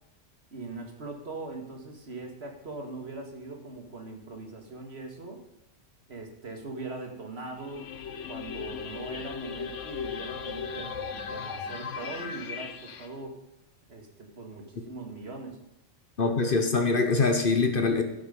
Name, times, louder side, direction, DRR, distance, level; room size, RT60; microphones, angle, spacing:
voice 1, 0.5-5.4 6.1-7.9 8.3-13.3 13.9-15.6, right 3 dB, 55° right, 2 dB, 2.2 m, -41 dB
sound 1, 7.6-13.1, left 6 dB, 75° left, 1.2 m, -37 dB
voice 2, 16.2-18.0, left 4 dB, 45° left, 6 dB, 1.3 m, -24 dB
16.0 x 6.5 x 5.3 m, 0.95 s
omnidirectional pair, 1.3 m